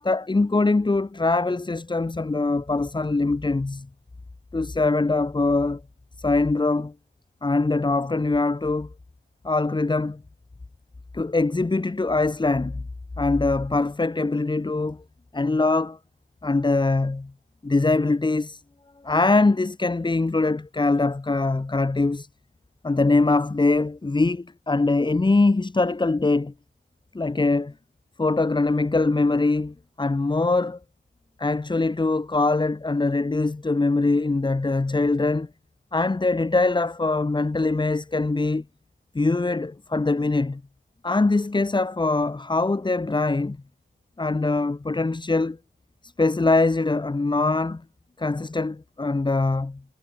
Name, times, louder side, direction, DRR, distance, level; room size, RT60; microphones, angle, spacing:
voice 1, 0.0-3.9 4.5-5.8 6.2-6.9 7.4-8.9 9.4-10.2 11.1-12.8 13.2-15.0 15.3-16.0 16.4-17.3 17.6-18.6 19.0-22.3 22.8-26.5 27.1-27.7 28.2-30.8 31.4-35.5 35.9-38.6 39.1-40.6 41.0-43.6 44.2-45.6 46.0-47.8 48.2-49.8, left 3 dB, 25° left, 0.9 m, -23 dB
wide cardioid pair, 130°, 20 cm